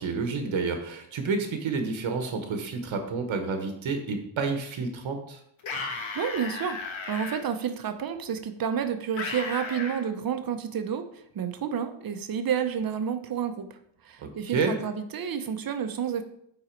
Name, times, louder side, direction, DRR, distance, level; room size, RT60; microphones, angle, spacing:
voice 1, 0.0-5.4 14.2-14.7, right 4 dB, 65° right, 5 dB, 1.1 m, -29 dB
sound 1, 5.6-7.4 9.2-10.0, left 4 dB, 65° left, 1.4 m, -34 dB
voice 2, 6.1-6.8 7.1-16.2, right 8 dB, 45° right, 8 dB, 0.8 m, -30 dB
8.9 x 4.0 x 4.5 m, 0.72 s
wide cardioid pair, 155°, 49 cm